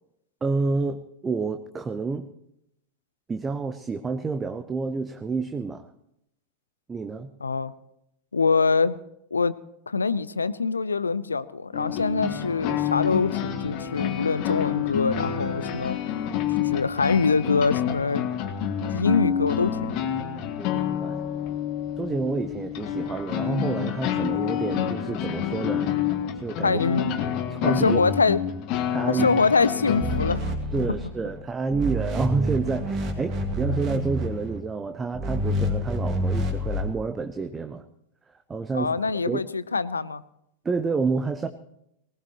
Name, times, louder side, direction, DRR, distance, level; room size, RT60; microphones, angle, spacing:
voice 1, 0.4-2.3 3.3-5.8 6.9-7.3 20.6-21.2 22.0-25.9 26.3-26.8 27.5-28.2 28.9-29.3 30.7-37.8 38.5-39.0 39.2-39.4 40.6-41.5, right 4 dB, 15° right, 9 dB, 0.8 m, -29 dB
voice 2, 7.4-7.7 8.3-9.0 9.3-9.5 9.9-16.0 16.6-18.3 18.8-19.9 26.6-27.2 27.7-28.4 29.1-30.5 38.7-40.2, left 4 dB, 75° left, 17 dB, 0.6 m, -24 dB
sound 1, 11.7-30.3, left 9 dB, 40° left, 1.8 m, -28 dB
sound 2, 30.0-31.4 31.7-34.6 35.1-36.8, equal, 40° right, 2.4 m, -28 dB
20.0 x 19.5 x 3.0 m, 0.79 s
figure-of-eight pair, 90°, 0 cm